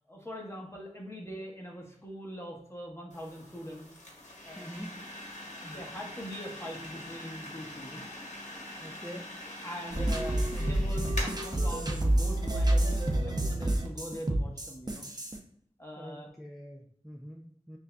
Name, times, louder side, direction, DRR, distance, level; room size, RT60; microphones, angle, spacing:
voice 1, 0.1-3.9 4.4-4.7 5.6-8.1 9.6-15.1 15.8-16.3, equal, 20° left, -1 dB, 1.2 m, -42 dB
sound 1, 3.1-13.2, left 1 dB, 80° left, 1.2 m, -44 dB
voice 2, 4.6-5.1 8.8-9.3 16.0-17.8, equal, ahead, -1 dB, 0.5 m, -45 dB
sound 2, 9.9-15.4, right 1 dB, 35° right, 0.7 m, -28 dB
6.0 x 2.7 x 2.3 m, 0.69 s
wide cardioid pair, 45°, 12 cm